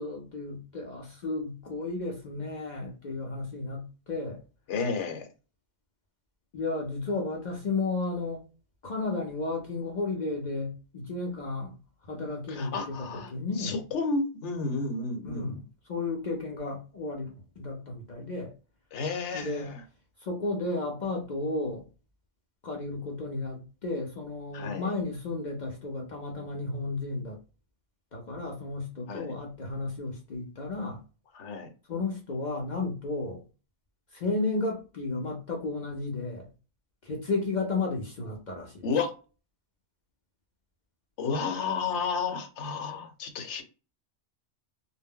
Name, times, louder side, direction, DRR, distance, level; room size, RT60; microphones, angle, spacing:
voice 1, 0.0-4.4 6.5-8.4 8.8-11.7 12.0-13.0 13.3-13.8 15.2-18.5 19.3-19.7 20.2-21.8 22.6-27.4 28.1-31.0 31.9-33.4 34.1-36.5 37.0-38.9, left 3 dB, 50° left, 0.6 m, -33 dB
voice 2, 4.7-5.3 12.5-15.6 18.9-19.8 24.5-24.9 29.1-29.4 31.3-31.7 38.8-39.1 41.2-43.6, left 4 dB, 75° left, 1.0 m, -32 dB
2.2 x 2.1 x 3.5 m
omnidirectional pair, 1.2 m